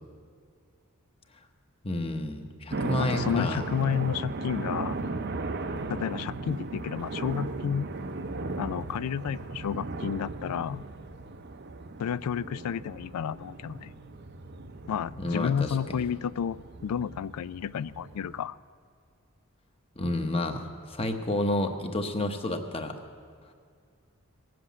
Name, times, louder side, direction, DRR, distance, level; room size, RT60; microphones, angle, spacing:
voice 1, 1.8-3.6 15.1-16.0 20.0-23.0, left 1 dB, 25° left, 6 dB, 0.9 m, -30 dB
sound 1, 2.7-18.4, right 3 dB, 50° right, 0.6 m, -37 dB
voice 2, 3.0-5.0 5.9-7.9 8.6-10.8 12.0-13.9 14.9-18.6, left 8 dB, 90° left, 18 dB, 0.3 m, -31 dB
18.5 x 7.7 x 8.3 m, 2.2 s
head